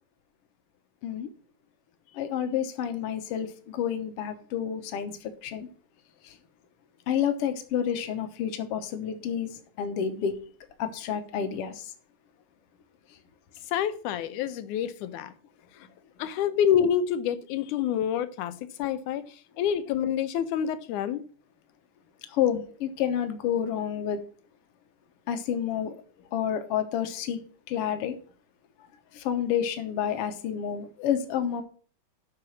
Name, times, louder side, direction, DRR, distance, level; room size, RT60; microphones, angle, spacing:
voice 1, 2.1-5.7 6.2-6.4 7.1-10.4 10.8-11.9 13.1-13.2 22.3-24.2 25.3-26.0 26.3-27.4 27.7-28.2 29.1-31.6, left 9 dB, 60° left, 1.8 m, -29 dB
voice 2, 13.7-15.3 15.8-15.9 16.2-21.2, left 9 dB, 80° left, 2.3 m, -27 dB
7.7 x 6.0 x 7.2 m
omnidirectional pair, 3.5 m